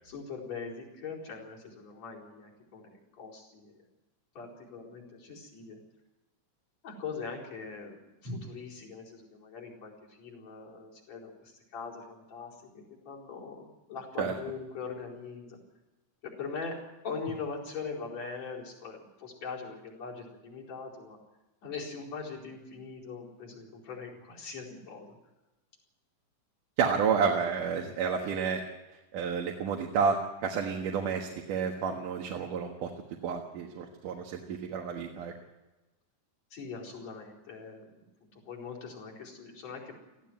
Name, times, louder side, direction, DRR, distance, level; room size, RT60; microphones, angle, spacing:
voice 1, 0.0-3.7 4.4-5.8 6.8-15.6 16.2-16.8 17.0-21.2 21.6-25.2 36.5-40.3, left 4 dB, 55° left, -3 dB, 5.7 m, -41 dB
voice 2, 26.8-28.6 29.1-32.9 33.2-35.3, right 6 dB, 80° right, 1 dB, 3.1 m, -30 dB
18.5 x 15.0 x 9.4 m, 1.1 s
omnidirectional pair, 3.6 m